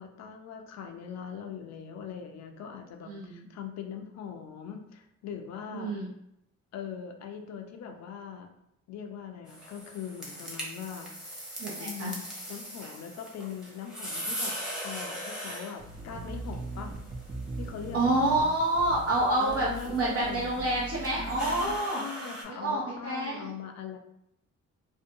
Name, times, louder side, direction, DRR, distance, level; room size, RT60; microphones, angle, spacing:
voice 1, 0.0-5.9 6.7-8.5 8.9-11.4 11.8-16.9 17.6-18.5 19.4-20.5 21.6-24.0, left 7 dB, 60° left, 4 dB, 0.5 m, -41 dB
voice 2, 3.1-3.5 5.7-6.1 11.6-12.1 17.9-22.0 22.6-23.5, right 1 dB, 50° right, -5 dB, 0.7 m, -28 dB
sound 1, 9.5-22.4, equal, ahead, 0.8 m, -41 dB
sound 2, 15.8-21.8, right 2 dB, 20° right, 0.3 m, -40 dB
2.6 x 2.1 x 2.7 m, 0.78 s
cardioid pair, 90°, 30 cm